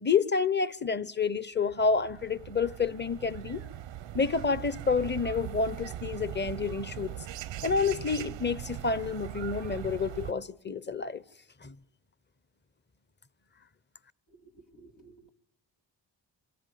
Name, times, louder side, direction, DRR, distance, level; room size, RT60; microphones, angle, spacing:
voice 1, 0.0-3.6 4.1-7.1 7.6-11.2 11.6-11.7, left 5 dB, 25° left, 0.9 m, -29 dB
sound 1, 1.6-10.3, right 12 dB, 90° right, 0.9 m, -40 dB
voice 2, 14.3-15.3, right 3 dB, 80° left, 2.5 m, -55 dB
27.0 x 18.0 x 9.4 m
cardioid pair, 60°, 43 cm